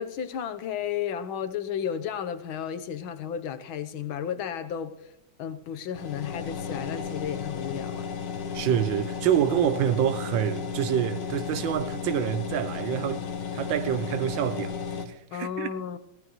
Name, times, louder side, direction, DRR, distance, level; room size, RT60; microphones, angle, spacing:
voice 1, 0.0-5.1 5.4-8.1 15.3-16.0, left 8 dB, 90° left, 1.8 m, -33 dB
sound 1, 5.9-15.1, left 7 dB, 65° left, 1.8 m, -34 dB
voice 2, 8.5-13.3 13.5-15.7, right 10 dB, 75° right, 1.4 m, -27 dB
18.5 x 15.0 x 3.1 m
omnidirectional pair, 2.1 m